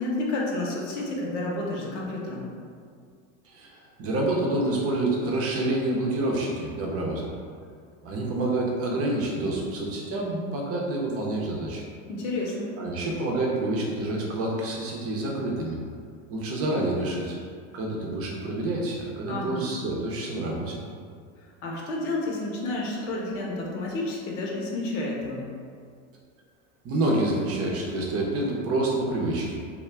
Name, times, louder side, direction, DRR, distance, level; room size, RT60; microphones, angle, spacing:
voice 1, 0.0-2.5 12.1-12.7 19.3-19.6 21.6-25.5, left 2 dB, 75° left, -2 dB, 0.8 m, -30 dB
voice 2, 3.4-7.3 8.0-11.8 12.8-15.8 16.3-17.4 17.7-20.8 26.8-29.6, right 2 dB, 40° right, -2 dB, 0.6 m, -28 dB
2.3 x 2.1 x 3.2 m, 2.2 s
supercardioid pair, 105°, 36 cm